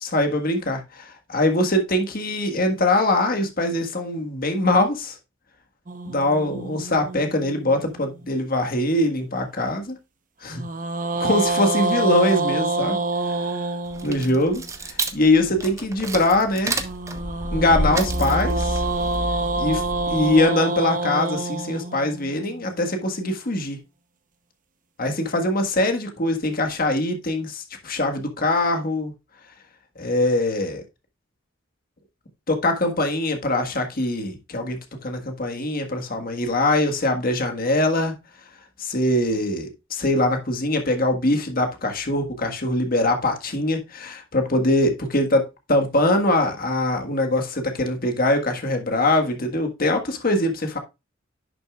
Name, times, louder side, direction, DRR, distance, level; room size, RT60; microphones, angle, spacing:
voice 1, 0.0-5.1 6.0-9.9 10.4-10.6 11.2-13.0 14.0-16.8 17.5-18.8 19.6-19.8 20.1-23.8 25.0-29.1 30.0-30.8 32.5-38.1 38.8-45.4 45.7-50.8, left 1 dB, 50° left, 1.6 m, -22 dB
sound 1, 5.9-8.3 10.5-14.7 16.8-23.0, right 2 dB, 45° right, 1.0 m, -27 dB
sound 2, 13.9-20.4, right 1 dB, 15° right, 0.9 m, -29 dB
11.0 x 6.7 x 2.4 m
head